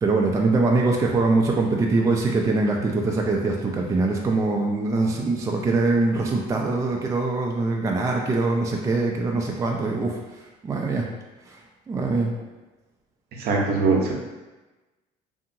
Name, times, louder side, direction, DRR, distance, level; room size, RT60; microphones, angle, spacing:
voice 1, 0.0-11.1 11.5-12.3, right 3 dB, 15° right, 0 dB, 0.3 m, -23 dB
voice 2, 13.4-14.1, right 4 dB, 60° right, -1 dB, 0.7 m, -21 dB
2.7 x 2.7 x 2.6 m, 1.1 s
supercardioid pair, 90°, 18 cm